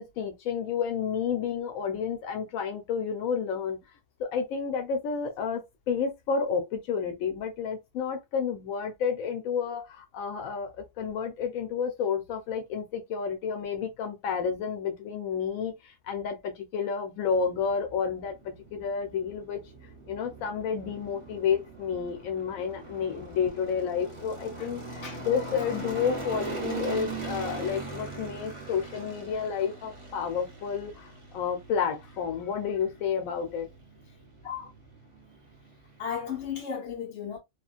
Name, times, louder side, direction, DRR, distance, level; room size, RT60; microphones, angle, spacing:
voice 1, 0.0-3.8 4.2-5.6 5.9-19.6 20.1-33.7, left 6 dB, 85° left, 1.0 m, -30 dB
sound 1, 17.2-36.6, right 3 dB, 30° right, 0.8 m, -41 dB
voice 2, 36.0-37.4, left 7 dB, 60° left, 1.0 m, -35 dB
2.9 x 2.4 x 2.4 m
omnidirectional pair, 1.4 m